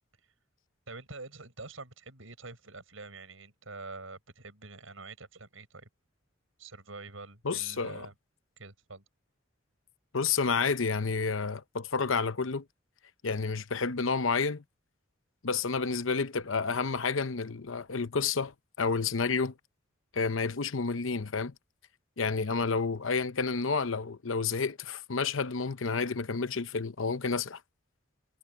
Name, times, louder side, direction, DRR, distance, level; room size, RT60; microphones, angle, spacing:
voice 1, 0.9-5.9 6.6-8.1 8.6-9.0 22.4-22.7, right 3 dB, 80° right, 6.4 m, -46 dB
voice 2, 7.4-8.1 10.1-12.6 13.2-14.6 15.4-19.5 20.1-21.5 22.2-27.6, left 4 dB, 75° left, 0.9 m, -30 dB
head